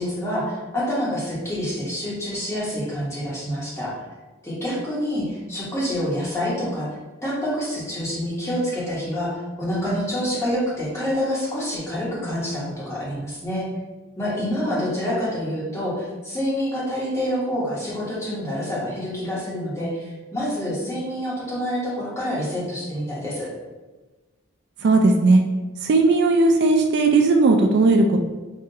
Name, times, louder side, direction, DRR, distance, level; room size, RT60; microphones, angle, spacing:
voice 1, 0.0-4.0 4.4-6.9 7.2-13.7 14.2-23.5, equal, 15° left, -7 dB, 1.0 m, -27 dB
voice 2, 24.8-25.4 25.8-28.2, right 3 dB, 50° right, 4 dB, 0.3 m, -17 dB
5.3 x 2.4 x 2.7 m, 1.2 s
head